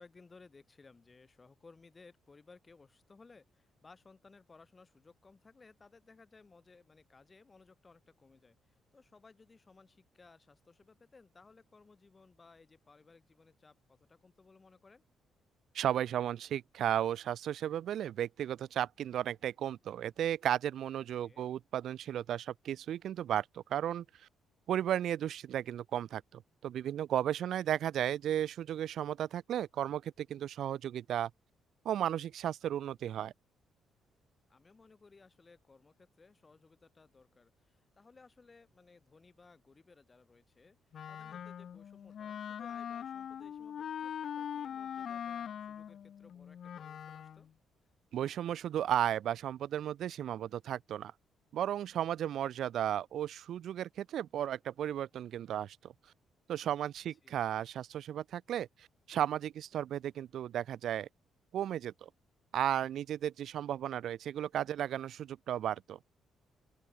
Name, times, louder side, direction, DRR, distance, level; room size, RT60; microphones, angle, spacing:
voice 1, 0.0-15.0 21.2-21.5 34.5-40.8 41.1-47.5 57.1-57.4, left 4 dB, 30° left, 4.2 m, -60 dB
voice 2, 15.7-24.0 24.7-31.3 31.8-33.3 48.1-51.1 51.5-55.9 56.5-58.7 59.1-61.1 61.5-62.1 62.5-66.0, right 10 dB, 70° right, 0.4 m, -34 dB
Wind instrument woodwind instrument, 40.9-47.5, left 9 dB, 60° left, 0.5 m, -42 dB
open air
cardioid pair, 90°, 0 cm